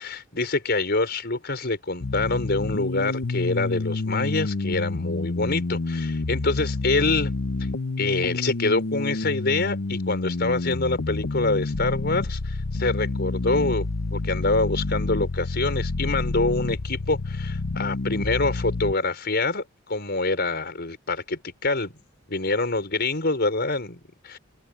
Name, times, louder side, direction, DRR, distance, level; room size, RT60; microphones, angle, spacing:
voice 1, 0.0-7.3 8.0-13.9 14.1-21.9 22.3-24.4, left 3 dB, 55° left, 5.1 m, -26 dB
sound 1, 2.0-18.9, left 3 dB, 80° left, 0.9 m, -28 dB
open air
head